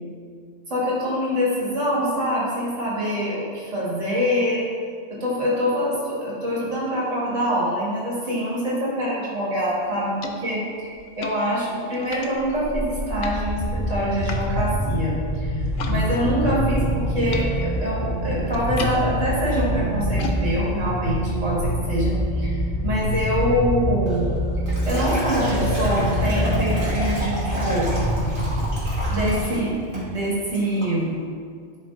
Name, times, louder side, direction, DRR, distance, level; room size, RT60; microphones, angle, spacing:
voice 1, 0.7-4.6 5.1-15.5 15.9-22.6 22.8-24.3 24.9-27.9 29.1-29.8 30.1-31.2, equal, 80° right, -7 dB, 2.1 m, -25 dB
sound 1, 9.6-16.0 16.3-22.2, left 3 dB, 90° left, 1.0 m, -40 dB
sound 2, 12.4-29.7, equal, 20° left, 1.3 m, -25 dB
Liquid, 24.1-29.6 29.9-30.2 30.5-30.9, right 1 dB, 45° right, 1.7 m, -31 dB
11.0 x 3.6 x 2.6 m, 2.1 s
omnidirectional pair, 1.3 m